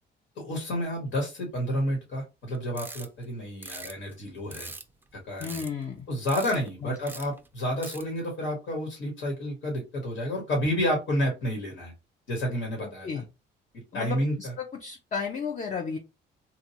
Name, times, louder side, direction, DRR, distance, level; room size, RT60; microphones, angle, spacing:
voice 1, 0.4-4.7 5.1-5.6 6.1-11.9 12.3-13.2 13.9-14.5, equal, 80° left, 0 dB, 1.4 m, -30 dB
sound 1, 2.5-3.2 3.6-5.0 5.4-6.0 6.3-6.7 6.9-7.5 7.8-8.2, right 2 dB, 10° right, 0.4 m, -42 dB
voice 2, 5.4-6.1 6.8-7.0 12.8-13.3 13.9-16.0, left 6 dB, 40° left, 2 dB, 0.6 m, -34 dB
3.0 x 2.4 x 2.8 m, 0.26 s
cardioid pair, 90°, 20 cm